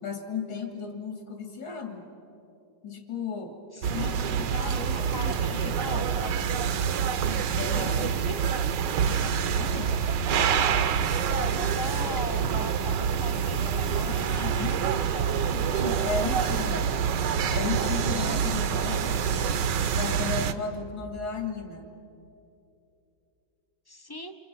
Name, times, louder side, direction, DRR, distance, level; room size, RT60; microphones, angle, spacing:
voice 1, 0.0-2.1 2.8-3.6 3.9-5.3 5.6-6.1 7.5-8.2 9.3-9.9 14.0-14.8 15.5-17.1 17.5-19.2 19.9-21.9, left 5 dB, 70° left, 3 dB, 3.2 m, -35 dB
voice 2, 3.7-4.1 4.9-7.1 7.5-8.4 9.3-9.5 11.2-15.4 15.8-15.9 16.3-16.8 18.2-19.6 23.9-24.4, left 2 dB, 35° left, 6 dB, 0.3 m, -40 dB
sound 1, 3.8-20.5, right 7 dB, 70° right, 1.5 m, -26 dB
Laughter, 7.2-13.2, right 5 dB, 50° right, 0.6 m, -43 dB
28.0 x 27.0 x 5.9 m, 2.8 s
omnidirectional pair, 2.0 m